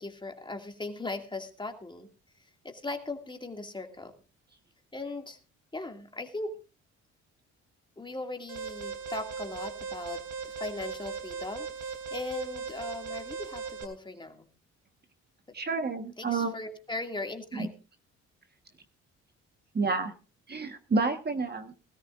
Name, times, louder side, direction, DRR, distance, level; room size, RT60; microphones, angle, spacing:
voice 1, 0.0-2.1 2.4-4.1 4.9-5.4 5.7-6.6 8.0-14.5 15.5-15.6 16.2-17.7, left 2 dB, 15° left, 4 dB, 2.3 m, -39 dB
Alarm, 8.5-13.8, right 5 dB, 70° right, 3.2 m, -38 dB
voice 2, 15.5-16.5 19.7-20.1 20.5-21.7, right 4 dB, 35° right, 6 dB, 1.4 m, -29 dB
20.0 x 13.5 x 2.5 m, 0.32 s
cardioid pair, 90°, 30 cm